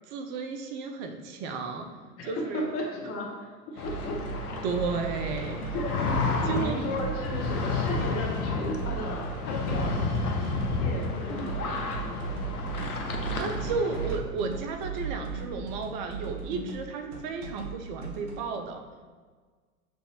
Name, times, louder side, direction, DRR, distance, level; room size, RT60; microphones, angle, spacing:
voice 1, 0.1-1.9 2.3-2.7 4.6-5.7 6.5-6.8 13.1-18.9, right 4 dB, 35° right, 5 dB, 0.4 m, -33 dB
voice 2, 2.2-3.5 3.8-4.1 4.5-4.6 5.6-10.1 10.8-12.4, left 1 dB, 35° left, -1 dB, 0.8 m, -35 dB
sound 1, 3.8-14.2, left 4 dB, 85° left, 0.6 m, -31 dB
sound 2, 3.8-18.4, right 5 dB, 55° right, 0.9 m, -37 dB
6.2 x 2.6 x 2.8 m, 1.5 s
figure-of-eight pair, 85°, 43 cm